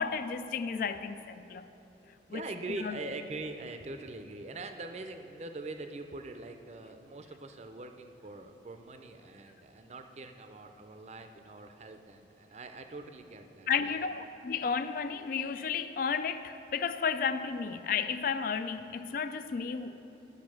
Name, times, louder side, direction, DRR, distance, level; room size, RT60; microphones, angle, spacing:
voice 1, 0.0-1.7 2.3-2.4 2.8-3.0 13.7-20.0, left 6 dB, 50° left, 12 dB, 0.3 m, -32 dB
voice 2, 2.3-14.1, right 2 dB, 40° right, 7 dB, 0.5 m, -43 dB
10.5 x 5.1 x 6.2 m, 2.9 s
head